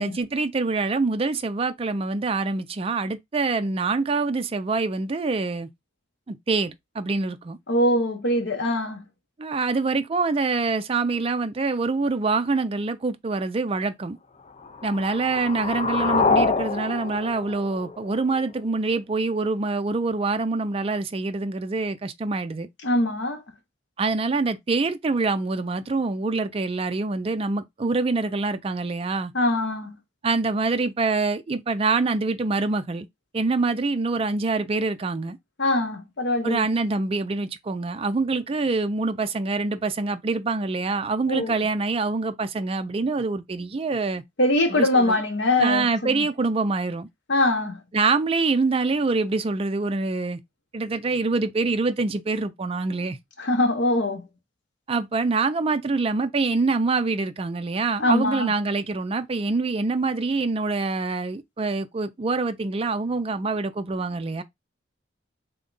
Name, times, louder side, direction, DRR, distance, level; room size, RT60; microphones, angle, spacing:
voice 1, 0.0-5.7 6.3-7.6 9.4-14.2 14.8-22.7 24.0-29.3 30.2-33.1 33.3-35.4 36.4-44.2 44.7-45.2 45.6-47.1 47.9-50.4 50.7-53.2 54.9-64.4, right 3 dB, 30° right, 0.4 m, -25 dB
voice 2, 7.7-9.0 22.8-23.4 29.3-30.0 35.6-36.7 41.3-41.6 44.4-46.3 47.3-47.8 53.4-54.2 58.0-58.5, left 1 dB, 65° left, 0.9 m, -23 dB
sound 1, 14.6-18.6, left 4 dB, 35° left, 0.4 m, -26 dB
3.6 x 2.3 x 3.8 m
head